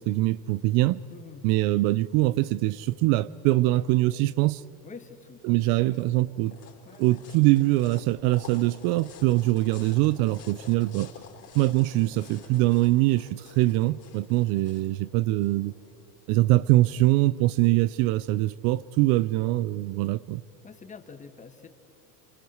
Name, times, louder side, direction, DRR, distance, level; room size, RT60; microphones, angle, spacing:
voice 1, 0.0-1.0 1.4-4.6 5.4-6.6 7.0-11.1 11.5-15.7 16.3-20.4, right 18 dB, 55° right, 19 dB, 0.6 m, -23 dB
voice 2, 1.1-1.4 4.8-6.2 6.8-7.2 20.6-21.7, left 5 dB, 15° left, 9 dB, 1.4 m, -47 dB
sound 1, 5.4-16.3, left 7 dB, 35° left, 4.1 m, -50 dB
28.0 x 21.5 x 7.9 m, 2.5 s
supercardioid pair, 135°, 44 cm